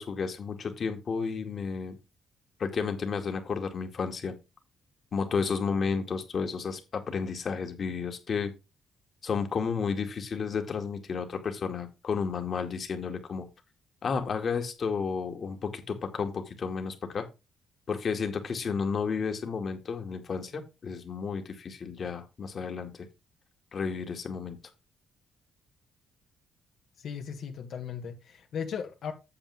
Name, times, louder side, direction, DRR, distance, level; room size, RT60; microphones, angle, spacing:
voice 1, 0.0-2.0 2.6-4.4 5.1-8.5 9.2-13.5 14.0-17.3 17.9-23.1 23.7-24.6, left 5 dB, 50° left, 2.3 m, -32 dB
voice 2, 27.0-29.1, left 7 dB, 70° left, 1.8 m, -37 dB
8.9 x 7.3 x 3.6 m
cardioid pair, 90°, 0 cm